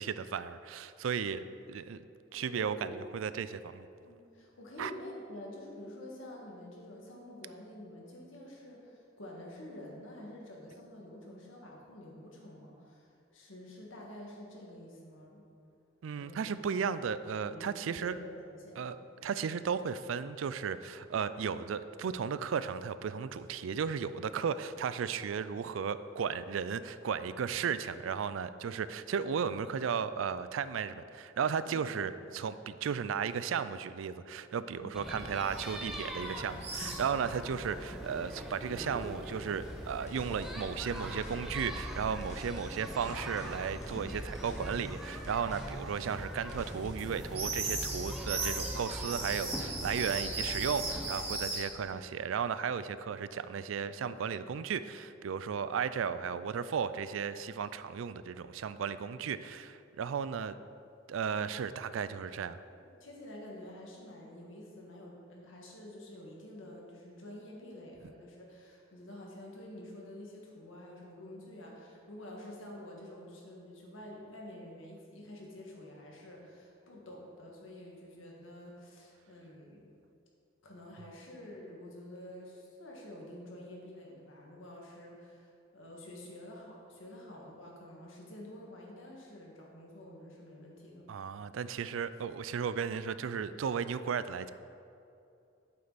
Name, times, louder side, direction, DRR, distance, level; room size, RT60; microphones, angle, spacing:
voice 1, 0.0-2.0 2.3-3.9 4.8-4.9 16.0-18.1 18.8-60.6 61.1-62.6 91.1-94.5, right 6 dB, 90° right, 14 dB, 0.4 m, -35 dB
voice 2, 2.3-3.0 4.0-15.4 16.2-16.5 16.9-17.0 17.4-18.8 31.7-31.8 32.0-32.1 34.8-34.9 62.9-79.9 80.6-91.1, left 1 dB, 85° left, -2 dB, 1.9 m, -48 dB
sound 1, 34.9-51.3, equal, ahead, 0.7 m, -42 dB
sound 2, 35.2-37.7 38.0-51.6, right 2 dB, 30° right, 1.7 m, -40 dB
sound 3, 39.6-48.3, left 1 dB, 35° left, 1.6 m, -51 dB
8.5 x 7.8 x 4.1 m, 2.6 s
head